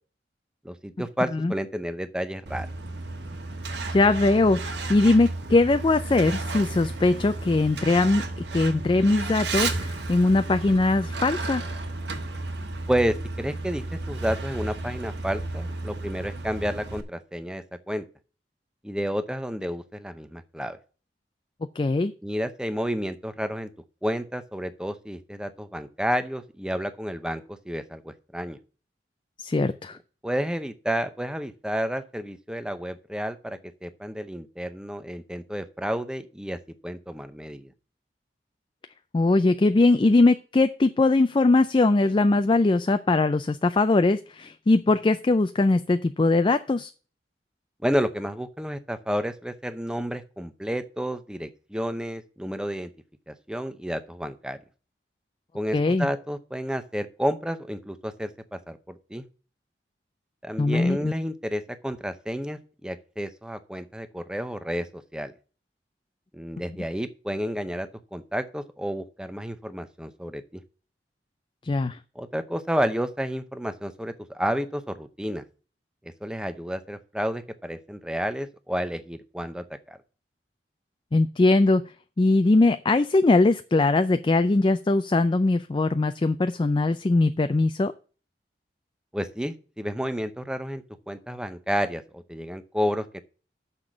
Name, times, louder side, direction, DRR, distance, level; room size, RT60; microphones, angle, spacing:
voice 1, 0.6-2.7 12.9-18.1 18.8-20.8 22.2-23.7 24.0-28.6 30.2-37.7 47.8-52.9 53.3-54.6 55.5-59.2 60.4-65.3 66.3-70.6 72.1-75.4 76.0-80.0 89.1-93.2, equal, 5° right, 11 dB, 0.7 m, -31 dB
Truck, 2.5-17.0, right 2 dB, 75° right, 1.4 m, -33 dB
voice 2, 3.9-4.6 4.9-11.6 21.8-22.1 29.4-30.0 39.1-46.9 55.7-56.1 60.6-61.1 71.6-72.0 81.1-81.8 82.2-87.9, left 2 dB, 25° left, 10 dB, 0.4 m, -21 dB
6.7 x 6.0 x 7.2 m, 0.37 s
head